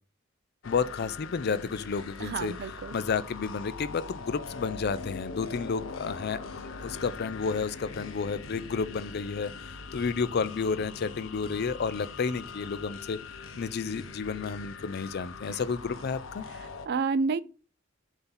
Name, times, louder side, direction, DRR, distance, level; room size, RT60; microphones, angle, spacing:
sound 1, 0.6-16.9, left 4 dB, 90° left, 0.8 m, -42 dB
voice 1, 0.6-16.4, left 5 dB, 55° left, 0.5 m, -31 dB
voice 2, 2.2-2.9 16.9-17.4, right 4 dB, 55° right, 0.4 m, -29 dB
7.9 x 2.8 x 5.6 m
head